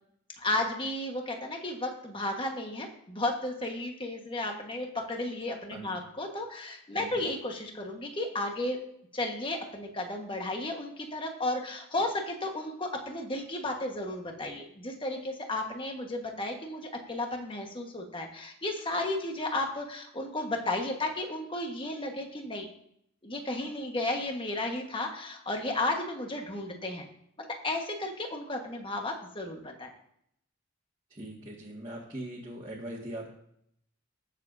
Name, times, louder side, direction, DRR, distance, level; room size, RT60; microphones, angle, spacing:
voice 1, 0.4-8.8 9.1-22.7 23.2-27.1 27.5-29.9, left 2 dB, 25° left, 2 dB, 1.4 m, -33 dB
voice 2, 5.7-6.0 6.9-7.1 31.1-33.3, right 1 dB, 20° right, -6 dB, 1.8 m, -41 dB
20.5 x 7.1 x 2.7 m, 0.71 s
head